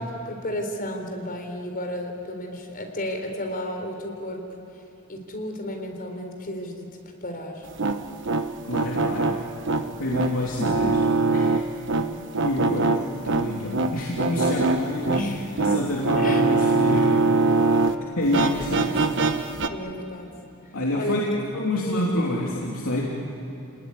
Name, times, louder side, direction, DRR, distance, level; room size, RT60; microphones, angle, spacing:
voice 1, 0.0-4.4 5.1-6.9 7.2-7.7 9.0-9.2 10.1-10.2 11.9-12.2 15.1-15.7 16.2-16.4 17.2-17.3 18.7-18.9 19.7-20.3 20.9-21.2 21.8-22.3, left 1 dB, 40° left, 3 dB, 3.9 m, -33 dB
sound 1, 7.6-18.0 18.3-19.7, right 3 dB, 60° right, 1.2 m, -23 dB
voice 2, 8.6-9.4 10.0-11.5 12.4-15.2 15.6-17.2 18.1-19.0 20.7-21.2 21.5-23.1, left 1 dB, 70° left, -3 dB, 3.2 m, -28 dB
29.0 x 19.5 x 9.9 m, 3.0 s
head